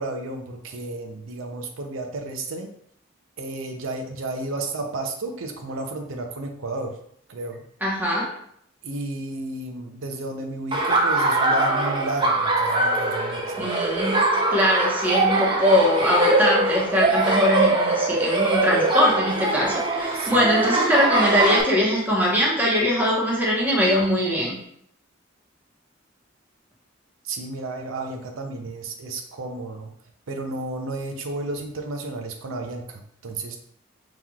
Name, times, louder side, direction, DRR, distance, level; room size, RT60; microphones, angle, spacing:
voice 1, 0.0-2.7 3.4-6.9 7.3-7.6 8.8-13.7 20.1-20.4 27.2-29.9 30.3-33.6, right 2 dB, 85° right, 4 dB, 0.6 m, -32 dB
voice 2, 7.8-8.2 13.5-14.2 14.5-24.6, left 1 dB, 10° right, -4 dB, 1.0 m, -21 dB
Laughter, 10.7-21.6, right 2 dB, 25° right, 0.5 m, -22 dB
5.5 x 3.0 x 2.3 m, 0.69 s
head